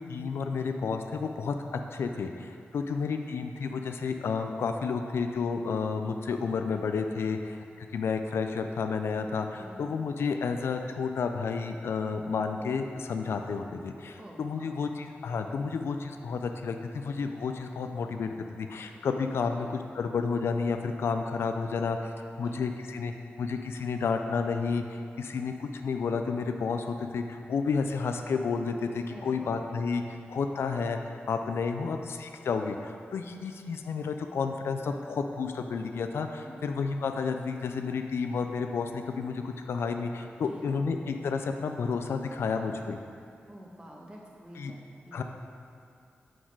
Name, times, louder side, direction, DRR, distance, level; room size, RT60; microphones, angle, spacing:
voice 1, 0.0-19.7 20.0-22.1 22.4-23.1 23.4-43.0 44.6-44.7 45.1-45.2, left 5 dB, 80° left, 6 dB, 0.3 m, -31 dB
voice 2, 2.9-3.2 9.6-9.9 14.2-14.7 19.6-19.7 22.4-22.8 29.1-29.6 36.4-36.7 40.5-40.8 43.5-45.2, equal, 25° right, -2 dB, 1.0 m, -48 dB
6.1 x 3.9 x 4.6 m, 2.5 s
wide cardioid pair, 85°, 4 cm